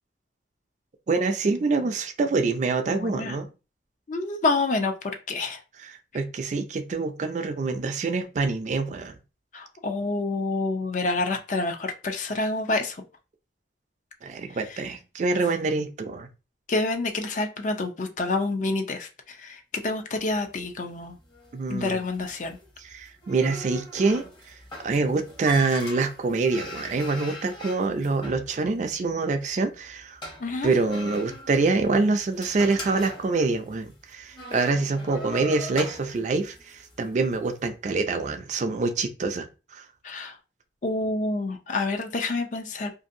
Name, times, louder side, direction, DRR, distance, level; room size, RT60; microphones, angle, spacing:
voice 1, 1.1-3.5 5.8-9.2 14.2-16.3 21.5-22.0 22.8-24.6 24.8-30.2 30.6-39.9, right 3 dB, 45° right, 0.3 m, -26 dB
voice 2, 2.9-3.4 4.1-5.6 9.5-13.0 16.7-21.2 21.7-22.6 30.4-30.7 40.0-40.4 40.8-42.9, left 3 dB, 45° left, 0.4 m, -28 dB
sound 1, 20.2-37.5, left 1 dB, 25° left, 0.8 m, -42 dB
2.6 x 2.6 x 2.5 m
head